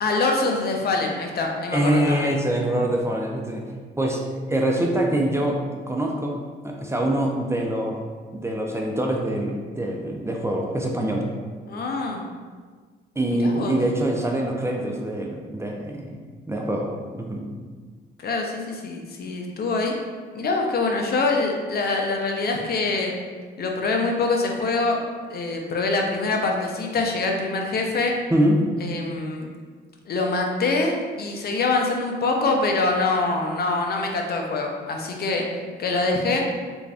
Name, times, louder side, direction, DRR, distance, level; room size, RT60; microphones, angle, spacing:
voice 1, 0.0-2.3 11.7-12.2 13.3-13.8 18.2-19.9 20.3-23.1 23.6-25.0 25.3-28.1 28.8-29.5 30.1-35.5 35.8-36.4, left 3 dB, 50° left, 2 dB, 0.6 m, -24 dB
voice 2, 1.7-3.6 4.0-5.6 5.9-6.4 6.6-8.0 8.3-11.3 13.2-16.2 16.5-17.5 28.3-28.7, right 1 dB, 15° right, 0 dB, 0.4 m, -24 dB
3.4 x 2.5 x 3.3 m, 1.5 s
cardioid pair, 90°, 20 cm